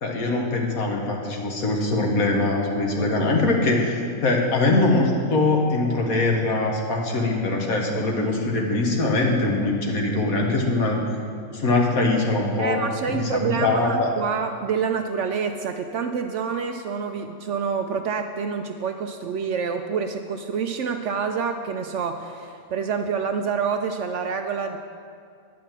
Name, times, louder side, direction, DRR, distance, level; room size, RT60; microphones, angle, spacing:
voice 1, 0.0-11.0 11.5-12.8 13.1-14.1, left 2 dB, 70° left, 0 dB, 1.8 m, -22 dB
voice 2, 12.6-24.8, right 6 dB, 65° right, 6 dB, 0.8 m, -27 dB
10.5 x 6.0 x 7.4 m, 2.4 s
omnidirectional pair, 1.6 m